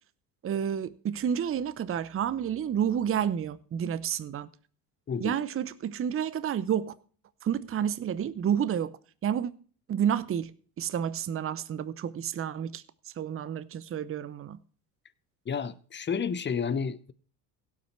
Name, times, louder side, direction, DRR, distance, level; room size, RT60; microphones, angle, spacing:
voice 1, 0.4-4.5 5.2-6.9 7.4-9.5 9.9-14.6, right 9 dB, 30° right, 0.7 m, -30 dB
voice 2, 15.5-17.1, left 6 dB, 25° left, 0.9 m, -31 dB
16.5 x 6.1 x 4.5 m
hypercardioid pair, 75°, 45 cm